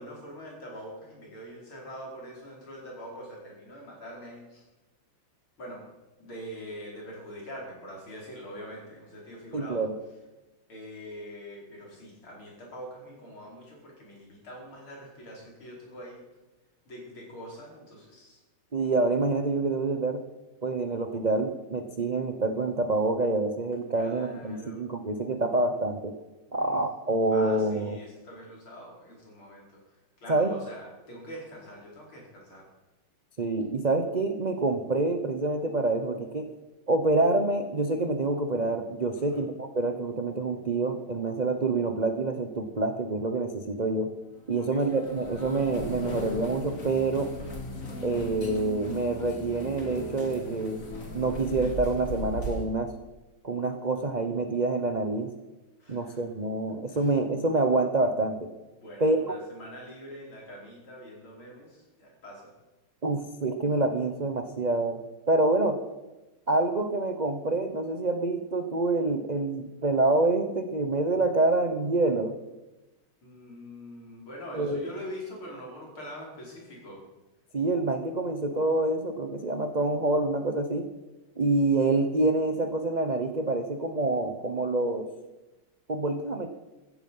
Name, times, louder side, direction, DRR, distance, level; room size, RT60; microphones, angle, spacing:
voice 1, 0.0-4.6 5.6-5.8 6.2-9.8 10.7-16.2 16.9-18.4 24.0-24.8 26.6-26.8 27.3-32.7 39.2-39.5 44.6-44.9 55.8-56.2 56.9-57.1 58.8-62.5 73.2-77.0, equal, 75° left, -2 dB, 5.6 m, -44 dB
voice 2, 9.5-10.0 18.7-20.2 20.6-26.1 26.5-28.0 30.3-30.5 33.4-36.5 36.9-44.1 44.5-47.3 48.0-50.8 51.1-52.9 53.4-55.3 55.9-58.5 59.0-59.3 63.0-65.0 65.3-65.8 66.5-72.3 74.5-74.9 77.5-80.9 81.4-85.1 85.9-86.5, right 2 dB, 90° right, 6 dB, 0.3 m, -27 dB
sound 1, 44.4-52.7, left 1 dB, 40° left, 2.7 m, -38 dB
15.0 x 14.5 x 5.5 m, 1.1 s
omnidirectional pair, 2.3 m